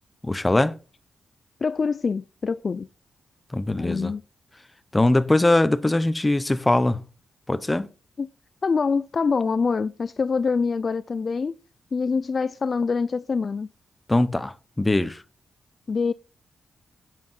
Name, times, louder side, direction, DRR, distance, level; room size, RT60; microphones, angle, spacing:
voice 1, 0.2-0.7 3.5-4.1 4.9-7.0 7.5-7.9 14.1-15.2, left 2 dB, 15° left, 0.9 m, -21 dB
voice 2, 1.6-2.9 3.8-4.2 8.2-8.3 8.6-11.5 11.9-13.7 15.9-16.1, left 5 dB, 50° left, 0.4 m, -25 dB
10.5 x 7.6 x 4.3 m
cardioid pair, 75°, 0 cm